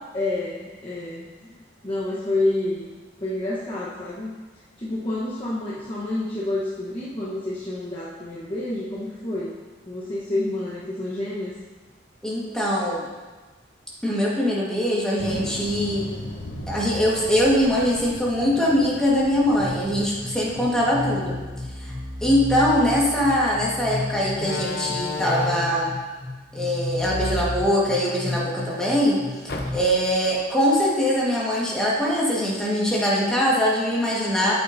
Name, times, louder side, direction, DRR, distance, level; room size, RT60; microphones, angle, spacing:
voice 1, 0.1-1.3 1.8-2.9 3.2-4.3 4.8-9.5 9.9-11.5, left 2 dB, 30° left, -8 dB, 1.1 m, -28 dB
voice 2, 12.2-13.1 14.0-16.1 16.7-21.4 21.8-21.9 22.2-25.9 26.5-29.2 29.7-34.5, equal, 5° left, -5 dB, 1.6 m, -22 dB
sound 1, 15.2-21.4, left 1 dB, 70° left, 1.2 m, -38 dB
sound 2, 19.6-29.7, left 2 dB, 75° right, 1.7 m, -33 dB
Slam, 23.3-23.5 24.4-25.9 27.0-28.4 28.7-28.8 29.5-30.1, left 2 dB, 55° left, 0.8 m, -31 dB
8.6 x 8.5 x 2.7 m, 1.3 s
head